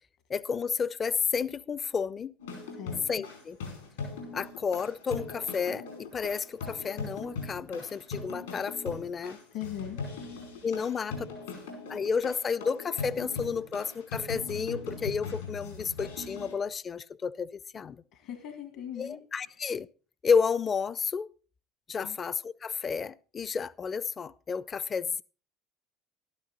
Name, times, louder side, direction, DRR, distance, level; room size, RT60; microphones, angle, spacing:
voice 1, 0.3-2.3 3.1-3.6 4.3-9.4 10.6-11.3 11.9-18.0 19.0-19.9 20.2-21.3 21.9-25.2, left 6 dB, 35° left, 0.6 m, -31 dB
sound 1, 2.4-16.5, left 4 dB, 85° left, 5.0 m, -40 dB
voice 2, 9.5-10.0 18.1-19.2 22.0-22.2, left 10 dB, 70° left, 1.7 m, -39 dB
12.0 x 11.5 x 4.0 m
hypercardioid pair, 70°, 0 cm